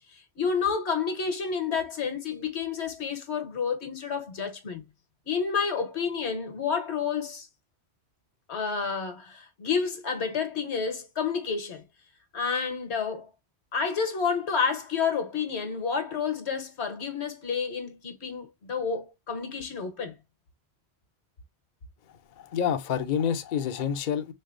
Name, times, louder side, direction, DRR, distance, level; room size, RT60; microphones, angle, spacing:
voice 1, 0.1-4.8 5.2-7.5 8.5-11.8 12.3-13.3 13.7-20.1, left 6 dB, 80° left, 1.4 m, -30 dB
voice 2, 22.4-24.3, left 8 dB, 55° left, 0.6 m, -28 dB
4.0 x 3.2 x 2.4 m
omnidirectional pair, 1.1 m